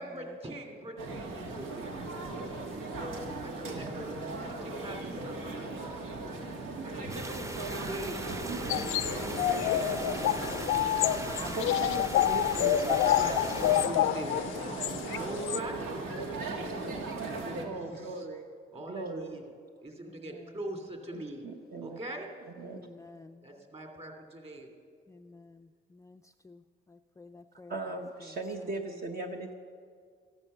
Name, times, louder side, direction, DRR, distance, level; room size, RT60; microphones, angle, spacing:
voice 1, 0.0-2.2 3.4-5.4 6.8-10.6 12.5-14.6 15.1-15.8 16.0-17.0 17.3-18.3 18.7-19.4 19.8-21.4 21.8-22.3 23.4-24.7, right 1 dB, 30° right, 3 dB, 2.8 m, -43 dB
sound 1, 1.0-17.6, right 2 dB, 85° right, 2.0 m, -38 dB
voice 2, 3.0-3.5 6.2-6.8 17.5-17.7 22.7-23.5 25.1-26.6 26.9-27.7, left 3 dB, 15° left, 7 dB, 0.4 m, -52 dB
sound 2, 7.1-13.9, right 2 dB, 15° right, 0.7 m, -41 dB
sound 3, 8.7-15.6, left 12 dB, 85° left, 0.5 m, -28 dB
voice 3, 11.4-13.5 17.6-18.5 18.9-19.4 21.1-22.0 22.4-22.8 27.7-29.5, right 2 dB, 50° right, 3 dB, 1.2 m, -38 dB
14.5 x 11.5 x 6.6 m, 2.1 s
cardioid pair, 90°, 20 cm